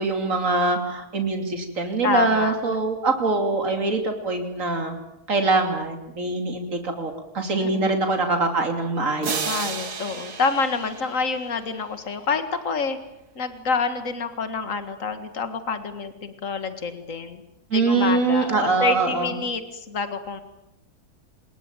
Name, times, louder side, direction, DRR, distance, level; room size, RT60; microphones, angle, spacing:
voice 1, 0.0-5.0 5.3-9.7 17.7-19.3, right 3 dB, 55° right, 4 dB, 3.4 m, -23 dB
voice 2, 2.0-2.6 7.6-8.0 9.5-13.0 13.4-17.4 17.7-20.4, left 5 dB, 55° left, 9 dB, 2.3 m, -27 dB
sound 1, 9.2-12.1, right 5 dB, 85° right, 2.3 m, -32 dB
25.0 x 21.0 x 9.1 m, 0.88 s
omnidirectional pair, 1.7 m